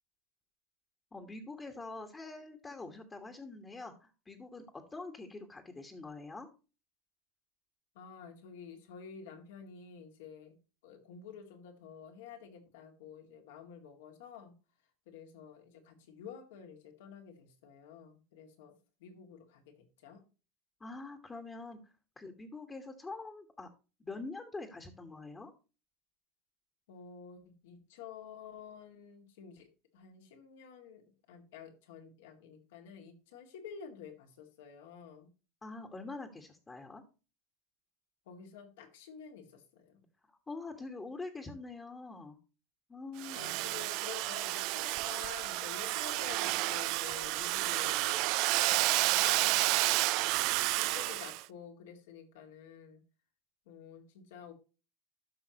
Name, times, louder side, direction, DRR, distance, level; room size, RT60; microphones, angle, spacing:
voice 1, 1.1-6.5 20.8-23.7 24.0-25.5 35.6-37.0 40.2-42.4 42.9-43.4 49.4-49.5, left 3 dB, 15° left, 2 dB, 1.5 m, -45 dB
voice 2, 7.9-10.5 10.8-14.5 15.1-18.7 19.0-20.2 26.9-29.7 29.9-31.0 31.3-35.3 38.3-40.0 43.3-50.0 50.6-53.0 53.7-54.5, left 7 dB, 80° left, 4 dB, 2.3 m, -50 dB
Domestic sounds home sounds, 43.2-51.4, right 20 dB, 60° right, 0.4 m, -31 dB
13.0 x 5.7 x 3.0 m, 0.32 s
supercardioid pair, 105°, 0 cm